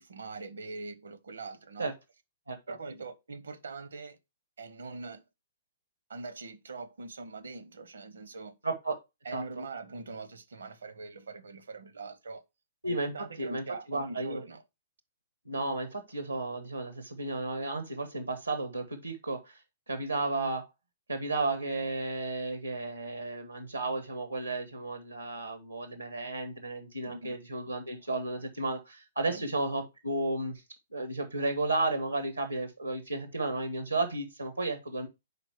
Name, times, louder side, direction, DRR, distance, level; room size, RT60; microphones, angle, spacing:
voice 1, 0.0-1.9 2.7-4.2 4.6-5.2 6.1-8.5 9.2-12.4 12.9-14.6 27.0-27.4 29.3-29.5, right 3 dB, 70° right, 0.8 m, -42 dB
voice 2, 8.6-9.0 9.3-9.4 12.8-13.1 13.4-14.4 15.4-19.6 19.9-20.7 21.1-30.6 30.9-35.1, right 2 dB, 90° right, 1.1 m, -33 dB
5.2 x 4.3 x 4.6 m
figure-of-eight pair, 115°, 0 cm